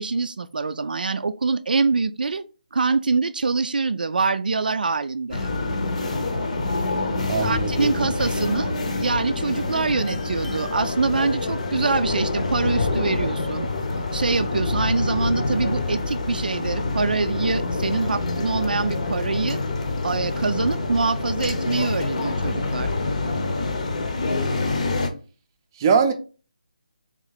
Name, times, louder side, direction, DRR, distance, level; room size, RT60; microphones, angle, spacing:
voice 1, 0.0-2.4 2.7-5.5 7.4-8.7 9.0-13.7 14.1-19.6 20.0-22.9, right 4 dB, 80° right, 0.4 m, -24 dB
sound 1, 5.3-25.1, left 3 dB, 50° left, 0.8 m, -26 dB
voice 2, 7.3-8.0 25.8-26.1, right 5 dB, 25° right, 0.5 m, -21 dB
3.7 x 3.0 x 4.0 m
hypercardioid pair, 165°, 5 cm